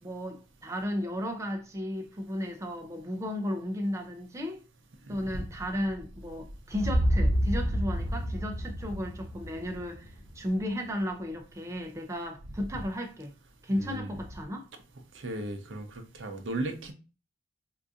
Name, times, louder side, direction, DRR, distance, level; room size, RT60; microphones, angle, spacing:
voice 1, 0.0-4.6 5.1-13.3 13.6-14.7, equal, 15° right, 0.4 m, -34 dB
sound 1, 6.7-10.8, equal, 20° left, 1.2 m, -29 dB
voice 2, 13.7-14.2 15.1-16.9, right 2 dB, 75° right, 0.7 m, -36 dB
3.8 x 2.5 x 2.4 m
head